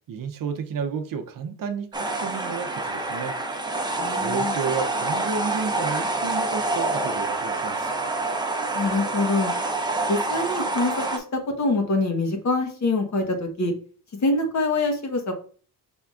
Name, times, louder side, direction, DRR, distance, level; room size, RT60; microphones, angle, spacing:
voice 1, 0.1-3.4 4.2-7.9, right 6 dB, 55° right, 0.7 m, -31 dB
sound 1, 1.9-11.2, right 2 dB, 10° right, 0.6 m, -27 dB
voice 2, 4.0-4.5 8.7-9.5 10.1-13.7 14.1-15.3, left 2 dB, 45° left, 1.2 m, -25 dB
5.5 x 3.5 x 2.4 m
cardioid pair, 90°, 40 cm